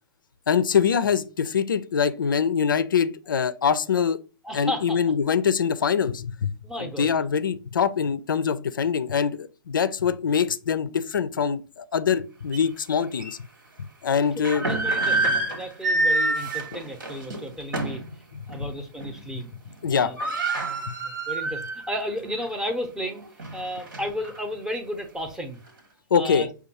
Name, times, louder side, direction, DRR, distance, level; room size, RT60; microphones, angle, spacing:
voice 1, 0.5-4.2 4.5-6.5 6.8-13.4 13.8-14.7 18.3-18.5 19.8-20.1 20.9-21.0 26.1-26.5, left 7 dB, 75° left, 0.4 m, -24 dB
voice 2, 4.4-5.0 6.6-7.1 14.3-18.0 18.5-19.5 19.9-20.2 21.0-23.2 23.5-25.6 26.1-26.5, equal, 5° right, 0.7 m, -33 dB
sound 1, 12.5-12.6 13.2-13.3 14.2-18.1 18.5-18.7 19.0-19.4 19.7-19.8 20.0-21.9 22.3-22.4 23.0-24.4, right 2 dB, 70° right, 1.4 m, -27 dB
5.2 x 2.3 x 2.8 m
figure-of-eight pair, 115°, 11 cm